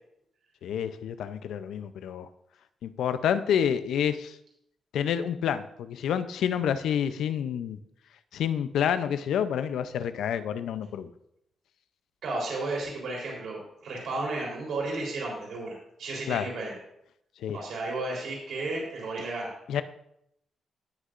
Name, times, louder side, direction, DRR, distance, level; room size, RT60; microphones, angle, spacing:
voice 1, 0.6-2.3 2.8-4.4 4.9-7.8 8.3-11.1 16.3-16.5 17.4-17.6 19.7-19.8, left 8 dB, 90° left, 12 dB, 0.5 m, -28 dB
voice 2, 12.2-16.8 17.5-19.5, right 2 dB, 70° right, -2 dB, 3.6 m, -33 dB
17.0 x 6.5 x 2.5 m, 0.78 s
wide cardioid pair, 165°, 0 cm